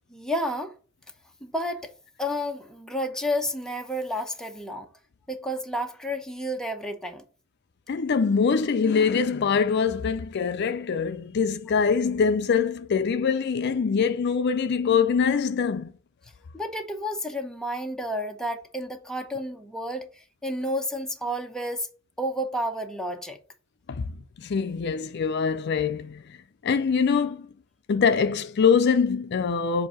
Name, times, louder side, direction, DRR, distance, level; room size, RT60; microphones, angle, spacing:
voice 1, 0.1-0.7 1.4-1.9 2.2-4.9 5.3-7.2 16.5-20.1 20.4-21.9 22.2-23.4, equal, 5° left, 0.8 m, -31 dB
voice 2, 7.9-15.9 23.9-24.1 24.4-26.2 26.6-27.4 27.9-29.9, left 6 dB, 55° left, 0.4 m, -23 dB
7.4 x 2.7 x 5.6 m
head